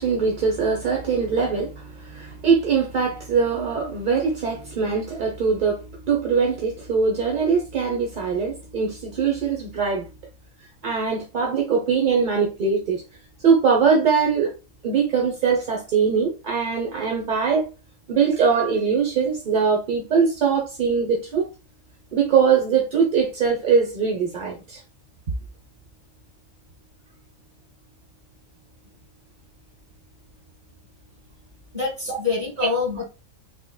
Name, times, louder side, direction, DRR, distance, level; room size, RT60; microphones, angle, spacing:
voice 1, 0.0-10.1 10.8-13.0 13.4-14.5 14.8-17.7 18.1-21.5 22.1-24.8, right 5 dB, 45° right, 0.7 m, -22 dB
voice 2, 31.7-33.0, left 4 dB, 25° right, 1.8 m, -25 dB
3.6 x 3.0 x 2.2 m
omnidirectional pair, 1.4 m